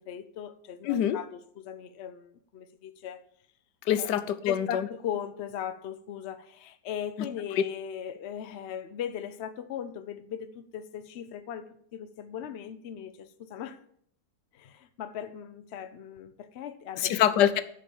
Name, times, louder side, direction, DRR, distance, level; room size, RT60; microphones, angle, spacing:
voice 1, 0.0-3.2 4.0-4.1 4.5-13.8 14.5-17.2, left 9 dB, 55° left, 0.8 m, -38 dB
voice 2, 0.9-1.2 3.9-4.9 17.0-17.6, left 10 dB, 85° left, 1.3 m, -25 dB
10.0 x 4.7 x 7.2 m
omnidirectional pair, 1.8 m